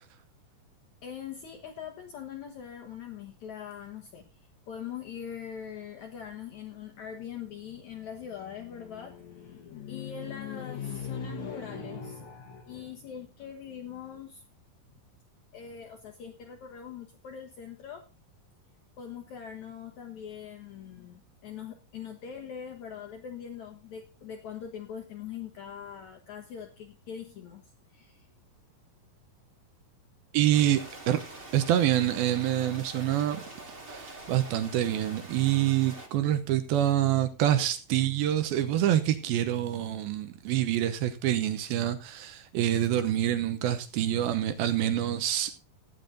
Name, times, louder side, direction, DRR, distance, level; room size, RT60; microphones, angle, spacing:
voice 1, 1.0-4.3 4.7-14.4 15.5-18.1 19.0-27.6 27.9-28.3, left 8 dB, 60° left, 2.4 m, -41 dB
voice 2, 30.3-31.2 31.5-33.4 33.9-45.6, right 12 dB, 90° right, 2.9 m, -26 dB
sound 1, 30.5-36.1, right 2 dB, 20° right, 1.6 m, -45 dB
15.5 x 10.0 x 3.9 m
omnidirectional pair, 4.1 m